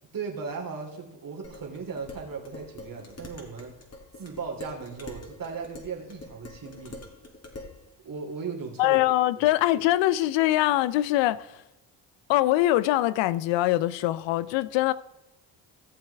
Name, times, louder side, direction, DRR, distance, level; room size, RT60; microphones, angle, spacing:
voice 1, 0.1-3.7 4.1-7.0 8.0-9.0 9.4-9.5, right 5 dB, 45° right, 2.9 m, -37 dB
Dishes pots and pans, 1.4-7.8, left 2 dB, 35° left, 2.7 m, -45 dB
voice 2, 8.8-11.6 12.3-14.9, left 15 dB, 75° left, 0.6 m, -23 dB
16.0 x 7.4 x 3.4 m
supercardioid pair, 60°, 45 cm